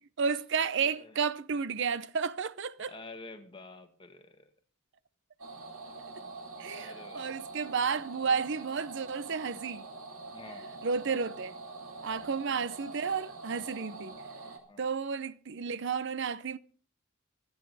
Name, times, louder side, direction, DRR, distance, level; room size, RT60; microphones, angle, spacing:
voice 1, 0.2-2.9 6.6-9.9 10.8-11.5 12.0-14.2 14.8-16.6, right 5 dB, 55° right, 0.6 m, -32 dB
voice 2, 0.8-1.1 2.9-4.5 5.8-5.9 6.7-7.4 10.3-10.7 12.1-12.3 14.7-14.8, left 2 dB, 25° left, 1.6 m, -49 dB
sound 1, 5.4-14.6, right 3 dB, 75° right, 3.1 m, -44 dB
24.5 x 9.7 x 4.0 m
head